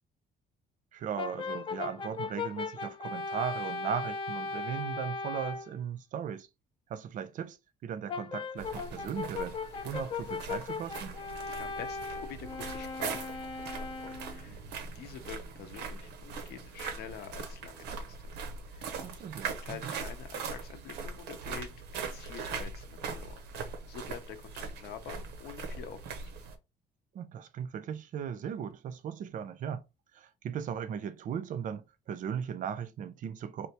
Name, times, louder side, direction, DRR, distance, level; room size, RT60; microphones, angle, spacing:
voice 1, 0.9-6.5 6.9-7.6 7.8-9.6 9.8-11.2 19.0-19.9 27.1-29.8 30.1-33.7, right 8 dB, 50° right, 0.5 m, -37 dB
Brass instrument, 1.2-5.7 8.1-14.4, left 4 dB, 30° left, 0.4 m, -38 dB
sound 1, 8.6-26.6, right 5 dB, 85° right, 0.7 m, -41 dB
voice 2, 11.6-14.7 14.9-18.2 18.7-18.9 19.6-26.2, left 8 dB, 70° left, 0.7 m, -47 dB
3.3 x 2.5 x 2.8 m
cardioid pair, 110°, 17 cm